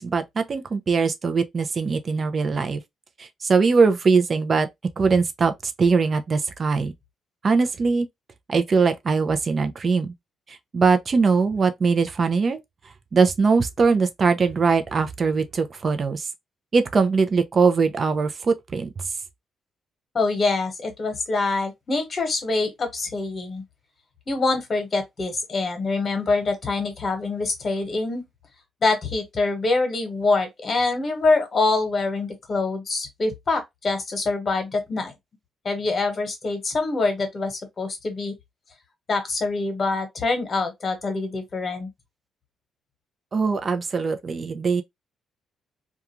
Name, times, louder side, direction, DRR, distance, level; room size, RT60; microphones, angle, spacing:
voice 1, 0.0-2.8 3.2-4.7 5.0-6.9 7.4-8.1 8.5-10.1 10.5-12.6 13.1-16.3 16.7-18.9 43.3-44.8, right 4 dB, 40° right, 0.5 m, -21 dB
voice 2, 20.1-23.6 24.3-28.2 28.8-35.1 35.6-38.3 39.1-41.9, left 3 dB, 40° left, 1.1 m, -25 dB
2.4 x 2.3 x 2.9 m
cardioid pair, 90°, 0 cm